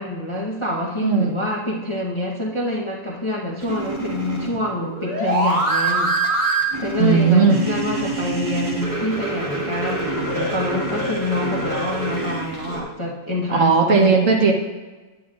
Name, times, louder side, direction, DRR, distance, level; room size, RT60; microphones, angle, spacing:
voice 1, 0.0-14.2, left 1 dB, 25° left, -5 dB, 0.8 m, -26 dB
voice 2, 1.0-1.4 7.0-7.6 13.5-14.5, right 5 dB, 60° right, 2 dB, 1.2 m, -16 dB
sound 1, 3.6-12.8, right 2 dB, 25° right, 1.4 m, -25 dB
9.3 x 9.0 x 2.4 m, 1.2 s
omnidirectional pair, 1.7 m